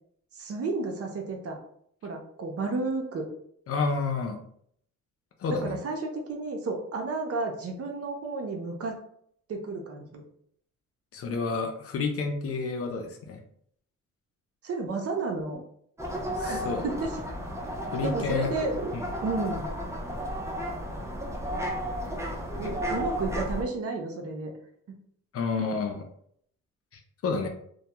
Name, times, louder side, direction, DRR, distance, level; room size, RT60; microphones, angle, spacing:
voice 1, 0.3-1.6 2.0-3.3 5.5-8.9 9.5-10.2 14.6-15.6 16.4-17.2 18.0-18.9 19.2-19.7 22.6-24.5, right 3 dB, 50° right, 3 dB, 0.6 m, -32 dB
voice 2, 3.7-4.4 5.4-5.8 11.1-13.4 16.4-16.8 17.9-18.5 18.9-19.0 22.6-22.8 25.3-26.0 26.9-27.5, left 4 dB, 50° left, 4 dB, 0.5 m, -30 dB
sound 1, 16.0-23.6, equal, 10° right, 0.5 m, -33 dB
2.2 x 2.1 x 2.8 m, 0.66 s
cardioid pair, 90°, 30 cm